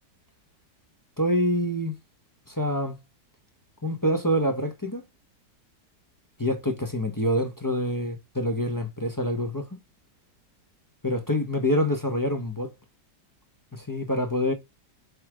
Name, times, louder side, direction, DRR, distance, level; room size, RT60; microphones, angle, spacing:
voice 1, 1.2-1.9 2.5-3.0 3.8-5.0 6.4-9.8 11.0-12.7 13.7-14.5, equal, 15° left, 0.9 m, -26 dB
8.1 x 3.3 x 5.0 m
omnidirectional pair, 1.9 m